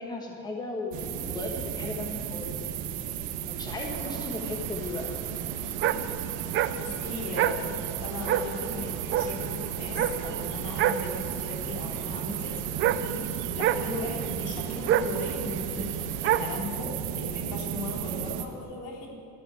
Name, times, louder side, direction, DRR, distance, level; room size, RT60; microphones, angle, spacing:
voice 1, 0.0-2.6 3.5-5.2, left 2 dB, 15° left, 1 dB, 1.4 m, -36 dB
sound 1, 0.9-18.4, right 9 dB, 80° right, 1.3 m, -34 dB
sound 2, 3.7-16.6, right 10 dB, 40° right, 0.5 m, -31 dB
voice 2, 6.8-7.6 8.0-19.1, left 2 dB, 80° left, -1 dB, 3.5 m, -38 dB
13.5 x 11.0 x 8.3 m, 2.5 s
cardioid pair, 165°, 30 cm